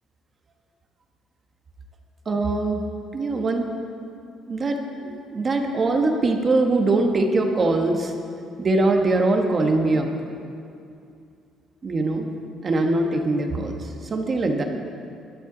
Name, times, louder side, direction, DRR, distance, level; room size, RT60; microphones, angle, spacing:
voice 1, 2.3-2.8 3.1-3.7 4.5-8.1 8.6-10.1 11.8-12.3 12.6-14.6, right 2 dB, 25° right, 3 dB, 1.3 m, -22 dB
21.5 x 12.0 x 3.9 m, 2.5 s
cardioid pair, 170°, 0 cm